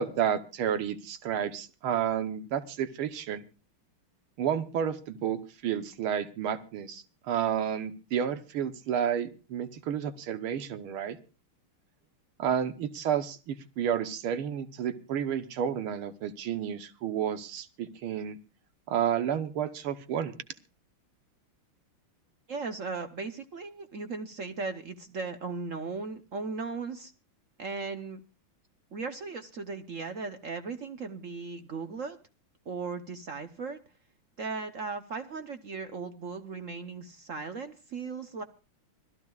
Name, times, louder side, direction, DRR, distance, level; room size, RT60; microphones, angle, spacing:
voice 1, 0.0-3.4 4.4-11.2 12.4-18.4 18.9-20.3, right 9 dB, 75° right, 11 dB, 1.8 m, -31 dB
voice 2, 22.5-27.1 27.6-28.2 28.9-32.2 32.7-33.8 34.4-38.4, right 4 dB, 55° right, 8 dB, 0.9 m, -37 dB
25.5 x 14.5 x 2.4 m, 0.33 s
omnidirectional pair, 2.4 m